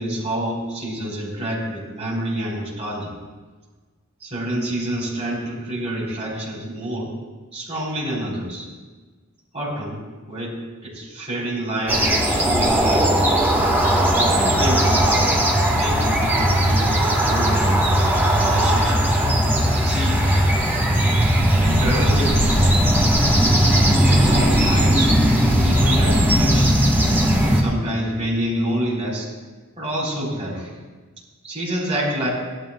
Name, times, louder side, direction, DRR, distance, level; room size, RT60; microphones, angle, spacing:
voice 1, 0.0-3.1 4.2-7.1 7.5-8.6 9.5-10.0 10.3-10.6 10.8-13.1 14.1-19.4 19.8-20.4 21.5-22.6 24.0-25.1 25.4-26.7 27.5-29.3 29.8-30.7 31.4-32.3, right 1 dB, 30° right, -5 dB, 4.5 m, -27 dB
sound 1, 11.9-27.6, equal, 10° right, 1.5 m, -18 dB
18.0 x 13.0 x 2.4 m, 1.3 s
head